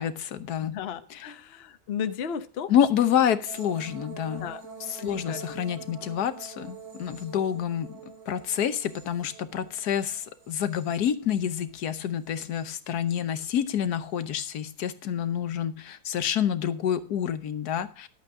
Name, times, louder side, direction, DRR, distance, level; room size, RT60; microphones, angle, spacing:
voice 1, 0.0-0.8 1.1-1.3 2.7-4.5 4.8-8.0 8.3-18.1, left 9 dB, 60° left, 11 dB, 1.2 m, -28 dB
voice 2, 0.6-2.7 4.4-4.6 5.0-5.4, left 8 dB, 85° left, 10 dB, 0.5 m, -34 dB
sound 1, 3.5-11.6 12.0-12.9 14.1-14.4, right 6 dB, 75° right, 4.2 m, -46 dB
11.5 x 8.3 x 4.7 m, 0.37 s
omnidirectional pair, 2.3 m